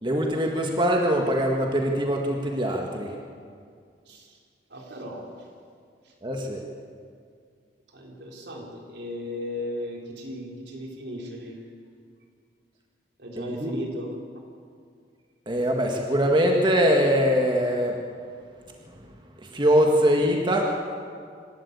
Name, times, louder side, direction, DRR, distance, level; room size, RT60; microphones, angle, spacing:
voice 1, 0.0-3.1 6.2-6.6 13.4-13.7 15.5-18.0 19.5-20.7, equal, 25° right, 1 dB, 1.8 m, -22 dB
voice 2, 4.7-5.3 7.9-11.6 13.2-14.1, left 1 dB, 80° right, 0 dB, 3.9 m, -36 dB
26.5 x 12.5 x 8.2 m, 2.2 s
head